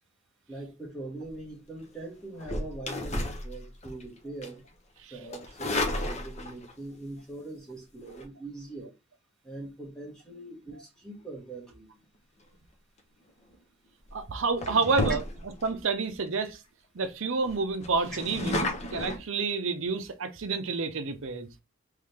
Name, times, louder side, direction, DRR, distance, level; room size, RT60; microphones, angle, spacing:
voice 1, 0.5-4.6 5.1-8.9 9.4-11.9, right 2 dB, 5° left, 1.5 m, -42 dB
sound 1, 2.4-4.0 4.4-4.7 5.3-6.7 8.0-8.2 13.3-13.5 14.0-14.2 14.6-15.7 16.2-16.3 16.5-16.6 17.0-17.1 17.4-19.2, left 1 dB, 30° left, 0.8 m, -32 dB
voice 2, 14.1-15.2 15.6-16.6 16.9-21.5, right 4 dB, 60° right, 0.6 m, -29 dB
3.7 x 3.2 x 3.3 m
head